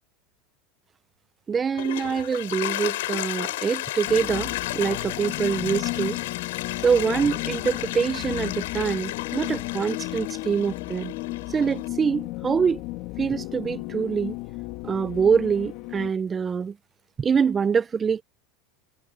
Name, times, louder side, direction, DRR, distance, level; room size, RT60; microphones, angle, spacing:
Toilet flush, 1.5-11.9, left 17 dB, 85° left, 5.6 m, -33 dB
voice 1, 1.5-6.2 6.8-11.1 11.5-12.8 13.2-14.3 14.8-16.7 17.2-18.2, right 6 dB, 25° right, 1.0 m, -25 dB
sound 1, 4.1-16.1, left 21 dB, 60° left, 3.4 m, -34 dB
supercardioid pair, 120°, 0 cm